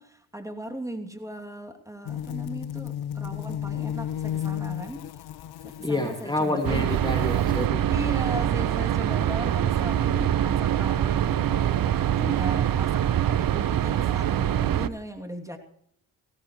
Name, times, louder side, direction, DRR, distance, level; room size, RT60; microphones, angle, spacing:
voice 1, 0.0-5.2 5.6-6.9 7.9-15.6, equal, 5° right, 3 dB, 2.6 m, -38 dB
sound 1, 2.0-7.7, left 10 dB, 55° left, 0.7 m, -34 dB
voice 2, 5.8-7.9, left 2 dB, 10° left, 4 dB, 2.1 m, -28 dB
sound 2, 6.6-14.9, right 10 dB, 45° right, 0.8 m, -24 dB
18.5 x 16.0 x 3.1 m, 0.67 s
hypercardioid pair, 50°, 47 cm